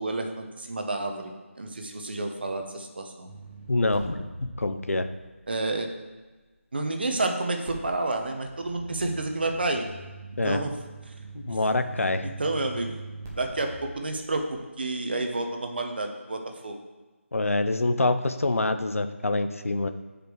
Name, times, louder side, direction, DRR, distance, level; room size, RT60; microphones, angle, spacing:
voice 1, 0.0-1.3 1.6-3.3 5.5-5.9 6.7-9.8 10.4-10.7 11.1-11.2 12.2-13.0 13.3-14.4 14.8-16.8, right 2 dB, 45° right, 4 dB, 0.9 m, -30 dB
sound 1, 3.3-6.4 7.6-14.6, right 2 dB, 10° right, 0.6 m, -43 dB
voice 2, 3.7-5.1 10.4-10.6 11.3-12.3 17.3-19.9, left 2 dB, 90° left, 9 dB, 0.6 m, -26 dB
6.6 x 5.1 x 4.6 m, 1.3 s
figure-of-eight pair, 175°, 7 cm